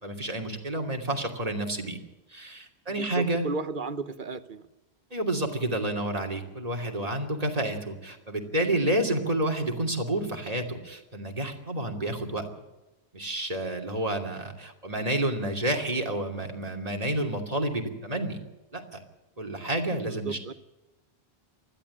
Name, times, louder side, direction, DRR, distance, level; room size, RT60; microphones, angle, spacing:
voice 1, 0.0-2.0 2.3-3.4 5.1-12.5 13.1-18.4 18.7-19.0 19.4-20.4, right 1 dB, 35° right, 2 dB, 2.9 m, -29 dB
voice 2, 2.9-4.6 20.1-20.5, right 3 dB, 50° right, 13 dB, 1.1 m, -34 dB
20.0 x 14.0 x 9.9 m, 1.0 s
omnidirectional pair, 1.1 m